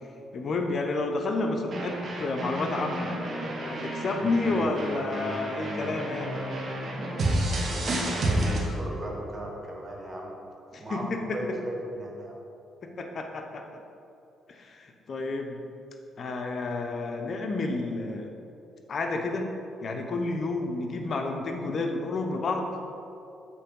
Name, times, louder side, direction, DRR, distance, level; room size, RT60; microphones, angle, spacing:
voice 1, 0.3-3.1 3.6-6.4 10.7-11.4 12.8-13.6 14.5-15.6 16.2-18.4 18.9-19.5 19.8-22.7, left 3 dB, 50° left, 3 dB, 0.8 m, -30 dB
sound 1, 1.7-8.6, right 1 dB, 45° right, 1.4 m, -30 dB
voice 2, 7.5-10.4 10.8-12.3, right 1 dB, 25° right, -1 dB, 1.4 m, -37 dB
7.4 x 4.5 x 5.3 m, 2.8 s
cardioid pair, 90°, 0 cm